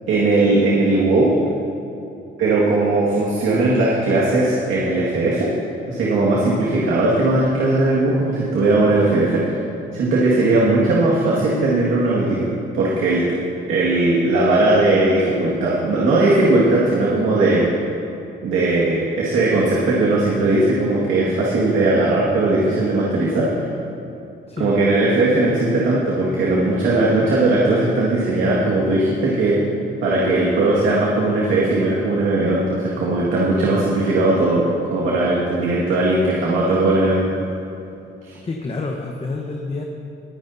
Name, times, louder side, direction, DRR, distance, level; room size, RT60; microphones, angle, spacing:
voice 1, 0.1-1.3 2.4-5.5 5.9-9.6 9.9-13.2 13.7-17.7 18.4-23.7 24.6-29.6 30.0-34.6 34.9-37.3 38.2-38.4, right 2 dB, 80° right, -5 dB, 1.9 m, -18 dB
voice 2, 24.5-24.8 38.4-39.8, left 3 dB, 30° left, 1 dB, 1.0 m, -28 dB
20.0 x 9.9 x 2.7 m, 2.7 s
cardioid pair, 90°, 20 cm